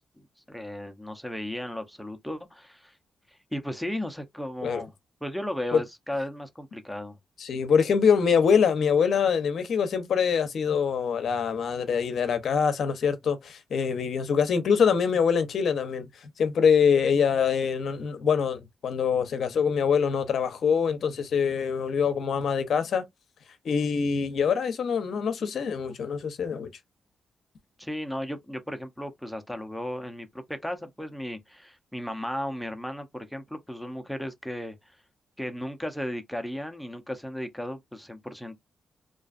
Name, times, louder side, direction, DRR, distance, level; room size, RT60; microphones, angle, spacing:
voice 1, 0.0-2.9 3.5-4.9 5.2-7.2 27.8-35.0 35.4-38.6, left 1 dB, ahead, 0.6 m, -35 dB
voice 2, 7.4-23.0 23.6-26.7, left 6 dB, 70° left, 0.6 m, -24 dB
2.5 x 2.3 x 2.4 m
supercardioid pair, 50°, 0 cm